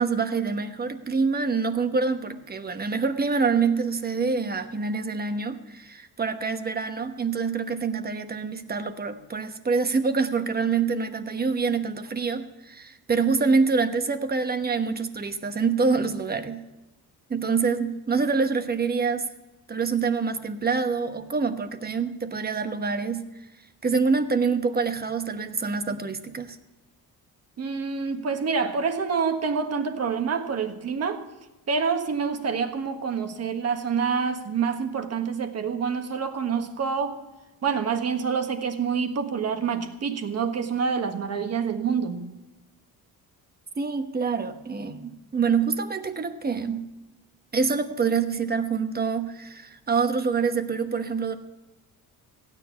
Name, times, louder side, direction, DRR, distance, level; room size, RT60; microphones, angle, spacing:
voice 1, 0.0-16.6 17.3-19.3 19.7-23.3 23.8-26.6 43.8-46.9 47.5-51.4, right 5 dB, 25° right, 9 dB, 1.1 m, -26 dB
voice 2, 27.6-31.2 31.7-37.2 37.6-42.3, right 6 dB, 45° right, 7 dB, 1.4 m, -27 dB
15.5 x 9.9 x 5.8 m, 1.1 s
cardioid pair, 115°, 36 cm